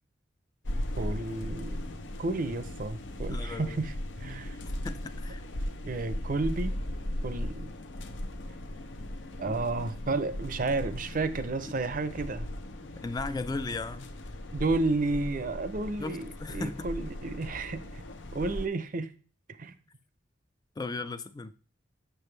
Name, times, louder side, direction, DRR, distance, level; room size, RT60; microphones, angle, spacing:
sound 1, 0.6-18.7, left 1 dB, 75° left, 0.7 m, -38 dB
voice 1, 1.0-1.8 2.2-4.6 5.8-6.7 7.2-7.7 9.4-12.5 14.5-18.0 18.3-19.1 19.6-19.7, right 3 dB, 45° right, 0.5 m, -32 dB
voice 2, 3.3-3.8 4.6-5.4 9.4-9.6 11.7-11.8 12.8-14.1 16.0-16.9 20.8-21.5, left 3 dB, 20° left, 0.3 m, -37 dB
6.9 x 6.4 x 3.3 m
head